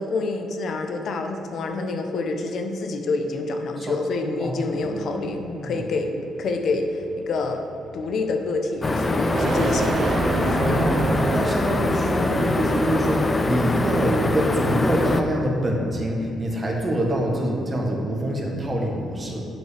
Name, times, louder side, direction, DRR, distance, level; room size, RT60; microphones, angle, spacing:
voice 1, 0.0-6.1 6.4-7.6 7.9-10.8, left 3 dB, 65° left, 5 dB, 0.8 m, -27 dB
voice 2, 4.4-5.9 10.6-19.4, right 1 dB, 30° right, 0 dB, 1.5 m, -26 dB
sound 1, 4.8-11.8, right 4 dB, 50° right, 0.6 m, -29 dB
sound 2, 8.8-15.2, left 2 dB, 25° left, 0.5 m, -23 dB
7.6 x 5.3 x 5.0 m, 2.8 s
cardioid pair, 90°, 0 cm